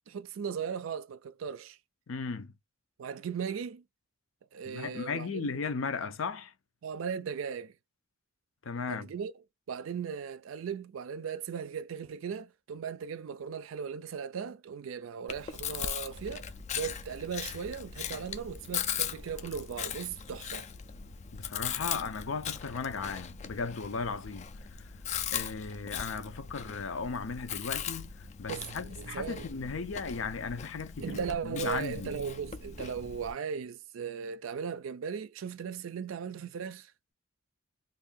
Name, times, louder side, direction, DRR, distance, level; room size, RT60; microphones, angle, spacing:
voice 1, 0.1-1.8 3.0-3.8 4.5-5.6 6.8-7.7 8.9-9.3 9.7-20.7 28.5-29.5 31.0-36.9, right 6 dB, 75° right, 0.4 m, -37 dB
voice 2, 2.1-2.5 4.7-6.5 8.6-9.1 21.3-24.4 24.7-24.8 25.3-32.1, left 5 dB, 75° left, 0.6 m, -36 dB
Chewing mastication, 15.3-33.3, left 8 dB, 35° left, 0.3 m, -39 dB
2.6 x 2.6 x 3.6 m
head